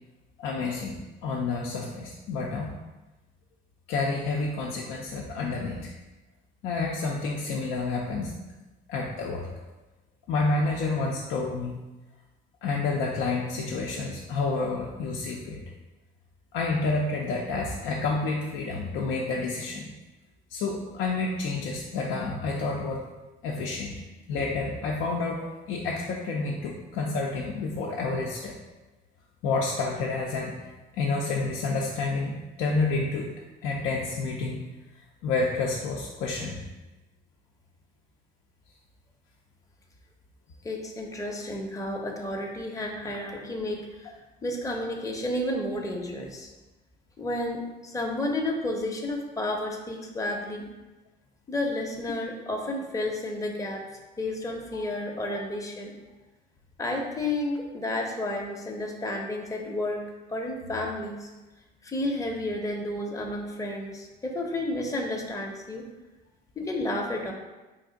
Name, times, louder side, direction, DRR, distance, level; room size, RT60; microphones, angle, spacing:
voice 1, 0.4-2.7 3.9-5.9 6.6-8.3 8.9-9.5 10.3-11.8 12.6-15.6 16.5-19.9 20.5-23.0 23.4-23.9 24.3-28.5 29.4-30.5 30.9-33.3 33.6-34.6 35.2-36.6 54.7-54.8 55.3-55.4, left 3 dB, 70° left, -3 dB, 0.5 m, -29 dB
voice 2, 40.6-44.1 44.4-46.5 47.2-50.6 51.5-53.8 54.2-55.9 56.8-60.0 60.3-61.3 61.8-65.8 66.6-67.3, left 1 dB, 15° left, 0 dB, 0.7 m, -31 dB
3.2 x 2.4 x 3.8 m, 1.1 s
supercardioid pair, 65°, 21 cm